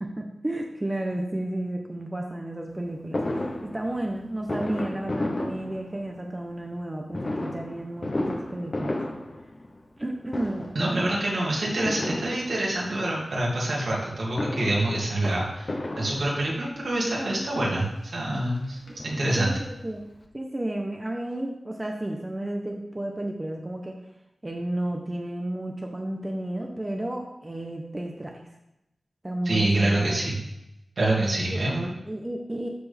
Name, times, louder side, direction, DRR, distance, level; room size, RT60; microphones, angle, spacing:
voice 1, 0.0-9.0 10.0-11.1 18.9-19.0 19.4-19.6 19.8-20.0 20.3-23.9 24.4-28.4 29.2-30.2 31.5-31.6 32.1-32.7, right 1 dB, 20° right, 2 dB, 0.9 m, -32 dB
Fireworks, 3.1-6.3 7.1-10.0 10.3-10.9 11.9-12.9 14.1-16.7 17.5-17.6 17.9-18.0 18.3-19.6 19.9-20.0 20.2-20.3, left 1 dB, 45° left, 1.1 m, -33 dB
voice 2, 10.7-17.9 18.1-18.8 19.0-19.5 29.4-30.4 31.0-31.9, right 1 dB, 75° right, -4 dB, 2.6 m, -26 dB
13.0 x 4.4 x 3.5 m, 0.89 s
wide cardioid pair, 75°, 0 cm